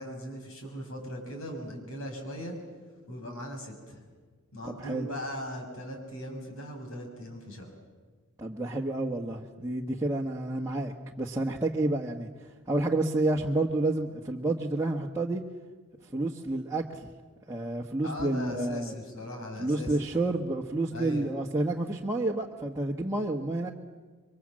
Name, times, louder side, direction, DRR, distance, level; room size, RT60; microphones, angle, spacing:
voice 1, 0.0-2.6 3.1-4.0 4.5-7.7 18.0-20.0 20.9-21.2, equal, 70° left, 3 dB, 6.2 m, -39 dB
voice 2, 4.6-5.1 8.4-15.4 16.1-17.1 17.5-18.9 19.6-23.7, right 2 dB, 15° right, -2 dB, 1.3 m, -30 dB
27.0 x 24.0 x 7.6 m, 1.4 s
head